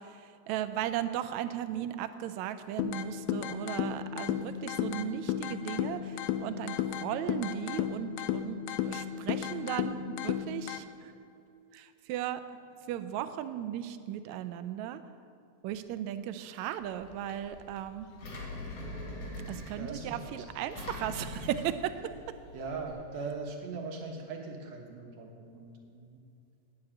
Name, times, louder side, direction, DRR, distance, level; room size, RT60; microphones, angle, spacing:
voice 1, 0.0-11.1 11.7-12.4 12.9-15.0 15.6-18.1 19.5-22.1, right 11 dB, 80° right, 11 dB, 1.8 m, -36 dB
sound 1, 2.8-10.8, left 10 dB, 90° left, 1.3 m, -34 dB
Engine, 16.8-22.9, left 1 dB, 70° left, 3.6 m, -43 dB
voice 2, 19.8-20.4 22.5-26.2, right 4 dB, 65° right, 1 dB, 2.4 m, -40 dB
9.8 x 7.7 x 8.4 m, 2.5 s
omnidirectional pair, 3.4 m